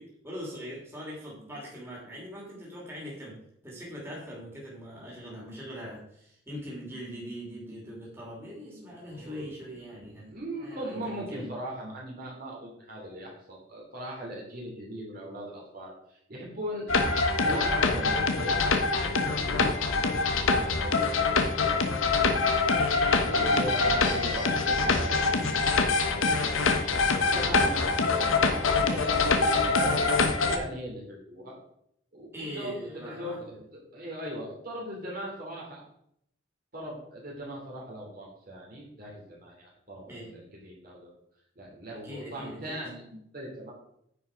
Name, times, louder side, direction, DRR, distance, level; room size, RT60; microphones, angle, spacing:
voice 1, 0.0-10.3 10.6-11.5 19.9-20.3 22.7-24.0 24.5-24.8 32.3-33.6 40.1-40.3 42.0-42.8, equal, 10° right, -4 dB, 3.0 m, -42 dB
voice 2, 9.1-17.1 17.4-21.9 22.3-22.5 23.1-26.8 27.2-31.6 32.1-33.6 33.9-35.8 36.7-41.1 41.5-43.7, right 1 dB, 45° right, -2 dB, 2.9 m, -40 dB
sound 1, 16.9-30.6, left 4 dB, 85° left, 1.2 m, -25 dB
9.8 x 5.8 x 5.1 m, 0.72 s
head